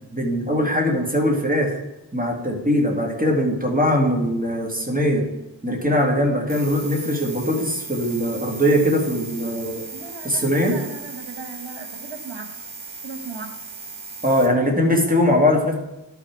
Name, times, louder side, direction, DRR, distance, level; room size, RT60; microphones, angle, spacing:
voice 1, 0.1-1.8 2.1-5.3 5.6-9.9 10.2-10.8 14.2-15.7, equal, 20° right, 0 dB, 2.0 m, -21 dB
sound 1, 6.5-14.5, right 4 dB, 90° right, 1.3 m, -37 dB
voice 2, 9.9-12.5 13.0-13.5 14.6-14.7, right 4 dB, 70° right, 4 dB, 1.4 m, -37 dB
11.5 x 5.7 x 4.5 m, 0.96 s
wide cardioid pair, 70°, 47 cm